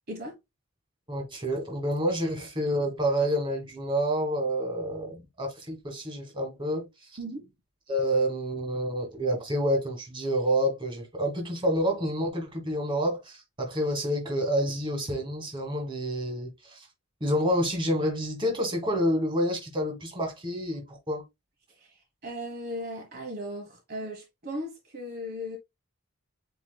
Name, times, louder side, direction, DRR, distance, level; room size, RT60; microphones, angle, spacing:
voice 1, 1.1-6.8 7.9-16.9 17.2-21.2, equal, 20° right, 1.5 m, -28 dB
voice 2, 7.2-7.5 21.8-25.6, equal, 45° right, 1.2 m, -37 dB
7.9 x 3.0 x 2.2 m
head